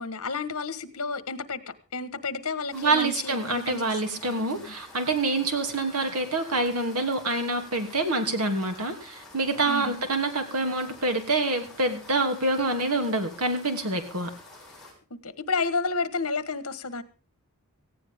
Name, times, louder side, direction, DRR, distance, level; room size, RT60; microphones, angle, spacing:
voice 1, 0.0-4.7 9.6-10.0 15.1-17.0, left 4 dB, 70° left, 13 dB, 1.5 m, -31 dB
sound 1, 2.7-14.9, left 2 dB, ahead, 7.1 m, -49 dB
voice 2, 2.7-14.3, right 2 dB, 90° right, 6 dB, 2.9 m, -26 dB
18.0 x 15.5 x 3.7 m, 0.34 s
head